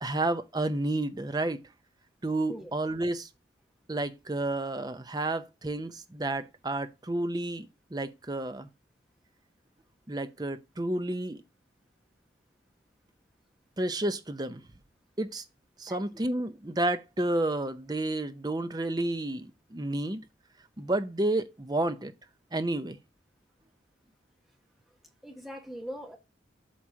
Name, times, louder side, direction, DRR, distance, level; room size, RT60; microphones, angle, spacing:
voice 1, 0.0-1.6 2.2-3.3 3.9-8.7 10.1-11.4 13.8-14.6 15.2-15.4 15.8-20.2 20.8-22.1 22.5-23.0, right 2 dB, 20° right, 0.6 m, -31 dB
voice 2, 15.9-16.2 25.2-26.2, equal, ahead, 1.1 m, -41 dB
8.2 x 3.1 x 6.2 m
head